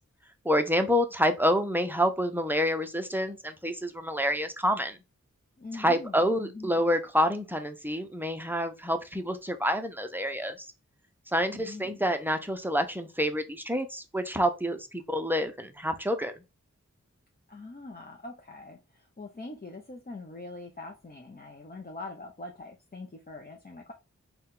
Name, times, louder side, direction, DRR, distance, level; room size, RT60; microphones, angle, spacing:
voice 1, 0.4-5.0 5.8-10.6 11.3-16.3, equal, 5° right, 0.6 m, -28 dB
voice 2, 5.6-6.8 11.5-12.0 17.5-23.9, left 3 dB, 30° left, 0.6 m, -43 dB
4.0 x 2.3 x 3.7 m
wide cardioid pair, 55°, 30 cm